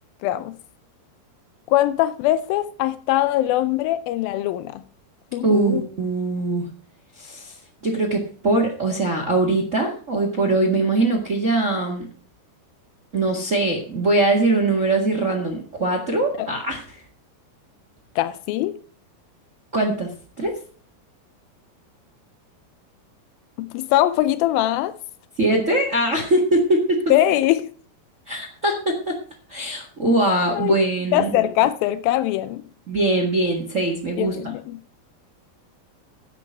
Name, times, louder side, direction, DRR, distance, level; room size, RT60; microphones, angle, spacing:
voice 1, 0.2-0.6 1.7-4.8 5.3-5.8 16.4-16.5 18.2-18.8 23.6-24.9 27.1-27.7 30.5-30.8 31.1-32.6 34.2-34.8, left 14 dB, 90° left, 2.0 m, -21 dB
voice 2, 5.4-6.7 7.2-7.5 7.8-12.1 13.1-16.8 19.7-20.1 20.4-20.6 25.4-27.1 28.3-29.2 29.5-31.3 32.9-34.3, right 2 dB, 85° right, 0.6 m, -22 dB
12.0 x 8.6 x 4.6 m
omnidirectional pair, 4.9 m